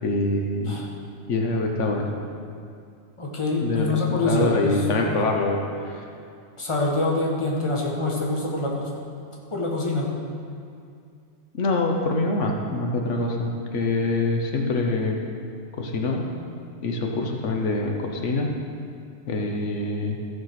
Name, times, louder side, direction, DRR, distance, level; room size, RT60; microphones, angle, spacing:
voice 1, 0.0-0.8 1.3-2.1 3.6-3.9 4.3-6.1 11.5-15.2 15.8-16.3 16.8-18.5 19.3-20.2, left 2 dB, 90° left, 1 dB, 1.3 m, -25 dB
voice 2, 3.2-4.8 6.6-8.9 9.5-10.1, left 2 dB, 25° left, -2 dB, 1.4 m, -25 dB
14.5 x 5.1 x 5.9 m, 2.4 s
omnidirectional pair, 1.2 m